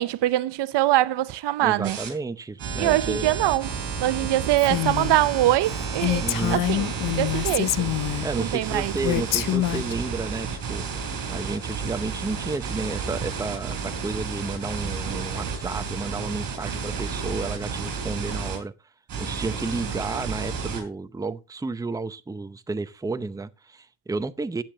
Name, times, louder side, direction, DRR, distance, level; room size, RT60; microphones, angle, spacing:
voice 1, 0.0-2.0 2.8-6.9 7.2-7.9 8.4-8.9, right 15 dB, 85° right, 0.8 m, -23 dB
voice 2, 1.6-3.3 6.2-6.6 8.2-10.9 11.3-18.7 19.2-24.6, right 3 dB, 10° right, 0.6 m, -31 dB
sound 1, 1.8-2.1 2.6-18.6 19.1-20.8, right 5 dB, 55° right, 4.8 m, -31 dB
Female speech woman speaking, 4.6-5.2 5.6-5.7 6.0-8.3 9.0-9.9, left 14 dB, 50° left, 0.5 m, -26 dB
15.0 x 8.7 x 2.8 m
cardioid pair, 130°, 41 cm